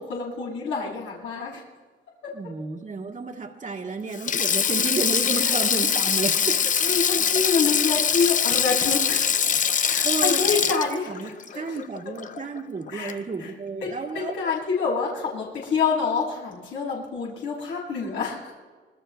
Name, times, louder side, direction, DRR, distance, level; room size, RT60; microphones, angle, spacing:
voice 1, 0.0-1.6 2.2-2.3 5.3-5.5 6.8-9.4 9.8-11.8 12.9-13.5 13.8-18.5, left 5 dB, 75° left, -4 dB, 6.6 m, -27 dB
voice 2, 2.3-6.8 10.0-14.4, right 4 dB, 40° right, 3 dB, 2.0 m, -32 dB
Sink (filling or washing), 4.1-12.6 12.9-13.1 14.3-14.5, left 7 dB, 40° left, 0.6 m, -23 dB
26.5 x 22.0 x 2.3 m, 1.5 s
cardioid pair, 90°, 20 cm